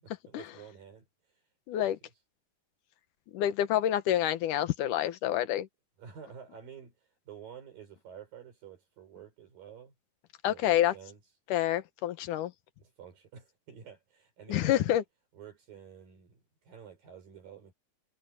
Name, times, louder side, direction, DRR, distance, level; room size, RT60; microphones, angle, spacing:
voice 1, 0.0-1.4 1.7-1.9 6.0-9.9 10.4-11.2 12.8-15.0 15.3-17.7, right 8 dB, 70° right, 6.4 m, -50 dB
voice 2, 1.7-2.0 3.3-5.7 10.4-10.9 11.5-12.5 14.5-15.0, left 12 dB, 70° left, 2.4 m, -27 dB
omnidirectional pair, 4.2 m